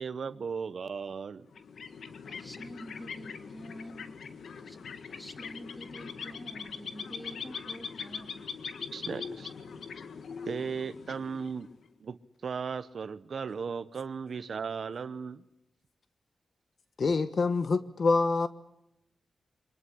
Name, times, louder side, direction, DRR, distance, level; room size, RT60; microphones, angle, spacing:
voice 1, 0.0-1.4 8.9-9.5 10.5-11.7 12.0-15.4, right 6 dB, 65° right, 0.9 m, -36 dB
sound 1, 1.5-11.9, left 6 dB, 80° left, 1.6 m, -42 dB
voice 2, 2.2-4.1 4.5-4.8 5.0-8.5, equal, 5° left, 3.7 m, -47 dB
voice 3, 17.0-18.5, left 3 dB, 60° left, 1.2 m, -26 dB
24.5 x 20.0 x 9.9 m
cardioid pair, 80°, 0 cm